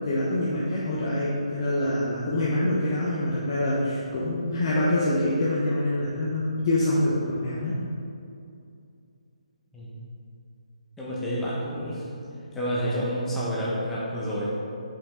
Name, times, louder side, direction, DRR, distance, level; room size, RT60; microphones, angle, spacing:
voice 1, 0.1-7.8, left 1 dB, 40° left, -7 dB, 0.8 m, -25 dB
voice 2, 11.0-12.1 12.5-14.5, equal, 5° left, -8 dB, 1.0 m, -29 dB
5.5 x 5.3 x 3.7 m, 2.5 s
hypercardioid pair, 160°, 4 cm